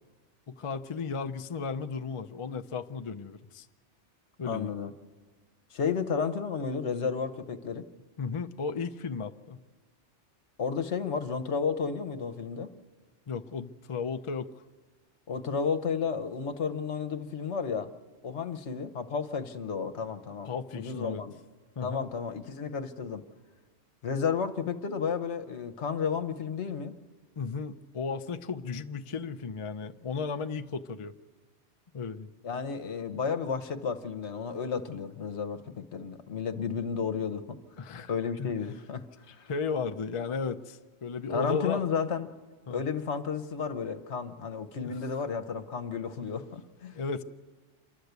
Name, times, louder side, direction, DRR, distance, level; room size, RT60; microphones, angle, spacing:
voice 1, 0.5-3.7 4.4-4.7 8.2-9.6 13.3-14.5 20.5-21.2 21.8-22.1 27.4-31.2 31.9-32.3 37.8-38.1 38.4-38.5 39.5-41.8 42.7-42.8 44.9-45.0 46.9-47.2, left 5 dB, 35° left, 7 dB, 0.5 m, -34 dB
voice 2, 4.4-4.9 5.7-7.8 10.6-12.7 15.3-17.9 18.2-21.3 21.8-23.2 24.0-27.0 32.4-37.6 38.1-39.5 41.3-42.3 42.7-47.0, left 6 dB, 70° left, 10 dB, 1.2 m, -32 dB
28.0 x 12.0 x 8.1 m, 1.4 s
omnidirectional pair, 1.2 m